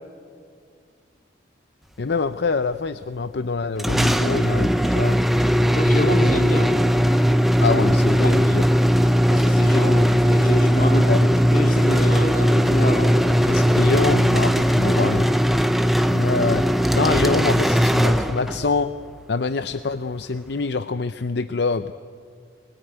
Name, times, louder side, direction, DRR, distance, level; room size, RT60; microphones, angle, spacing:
voice 1, 2.0-5.2 7.6-8.6 11.1-11.3 13.5-15.2 16.1-16.7 16.9-18.9 19.3-21.9, left 4 dB, 60° left, 11 dB, 0.6 m, -25 dB
sound 1, 3.8-18.7, equal, ahead, 0.7 m, -18 dB
voice 2, 5.7-6.8 8.2-8.4 9.3-13.1 14.9-15.2, left 1 dB, 45° left, 3 dB, 2.4 m, -26 dB
26.5 x 20.5 x 9.2 m, 2.2 s
head